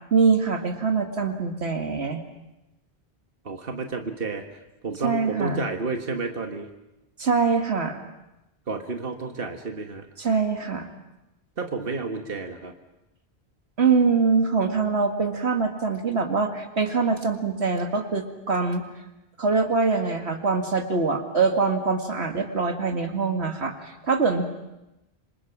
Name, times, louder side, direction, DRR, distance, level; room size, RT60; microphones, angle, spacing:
voice 1, 0.1-2.2 5.0-5.6 7.2-8.0 10.2-10.9 13.8-18.9 19.4-24.4, right 4 dB, 85° right, 5 dB, 2.2 m, -23 dB
voice 2, 3.5-4.4 4.8-6.7 8.7-10.1 11.6-12.7, right 3 dB, 60° right, 4 dB, 1.9 m, -31 dB
26.5 x 26.0 x 6.0 m, 0.93 s
omnidirectional pair, 1.1 m